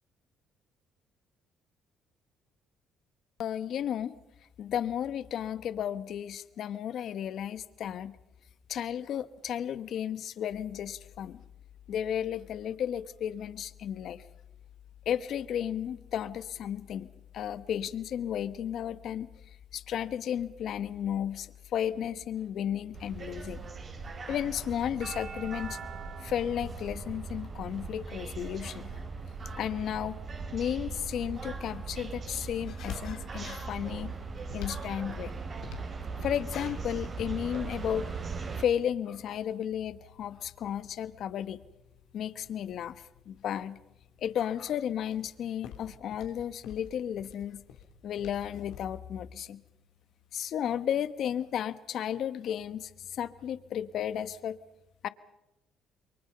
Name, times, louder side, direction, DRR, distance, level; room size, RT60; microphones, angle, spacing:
voice 1, 3.4-4.2 4.6-8.1 8.7-11.4 11.9-14.2 15.0-17.1 17.3-19.3 19.7-23.7 24.3-25.8 26.2-28.9 29.6-30.2 30.5-34.1 34.5-35.3 36.1-38.1 38.6-41.6 42.1-43.8 44.2-47.6 48.0-49.6 50.3-54.6 55.0-55.1, left 9 dB, 65° left, 14 dB, 1.2 m, -33 dB
sound 1, 10.5-28.1, left 10 dB, 35° left, 3.9 m, -55 dB
sound 2, 22.9-38.6, right 4 dB, 40° right, 3.1 m, -39 dB
sound 3, 31.9-49.0, left 7 dB, 80° left, 2.8 m, -50 dB
28.5 x 23.0 x 5.6 m, 0.92 s
cardioid pair, 85°, 0 cm